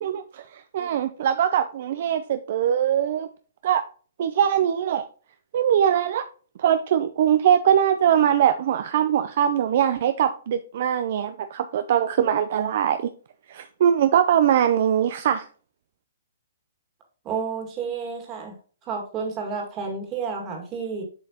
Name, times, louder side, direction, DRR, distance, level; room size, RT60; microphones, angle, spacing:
voice 1, 0.0-3.3 3.6-3.8 4.2-5.0 5.5-6.2 6.6-13.1 13.5-15.5, right 9 dB, 50° right, 0.4 m, -22 dB
voice 2, 17.2-18.6 18.8-21.0, right 5 dB, 20° right, 1.9 m, -30 dB
7.6 x 5.1 x 2.8 m
hypercardioid pair, 155°, 0 cm